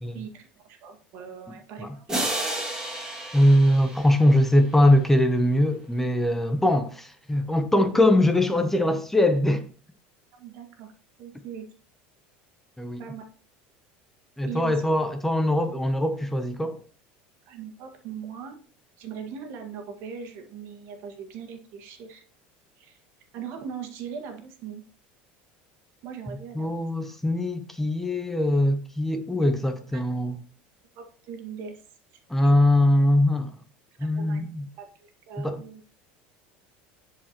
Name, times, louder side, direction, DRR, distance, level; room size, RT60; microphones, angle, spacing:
voice 1, 0.1-2.2 2.6-2.7 10.3-10.9 11.2-11.6 13.0-13.2 14.5-14.8 17.5-18.6 19.0-22.2 22.8-23.0 23.3-24.8 26.0-26.8 29.9-30.0 31.0-31.8 32.4-32.6 34.0-34.5 34.8-35.8, right 7 dB, 60° right, 1.7 m, -40 dB
sound 1, 2.1-4.8, right 1 dB, 15° right, 2.2 m, -32 dB
voice 2, 3.3-9.6 12.8-13.0 14.4-16.8 26.3-30.4 32.3-33.5 34.0-34.7 35.4-35.6, left 1 dB, 5° left, 0.8 m, -22 dB
11.0 x 4.8 x 3.0 m
supercardioid pair, 120°, 5 cm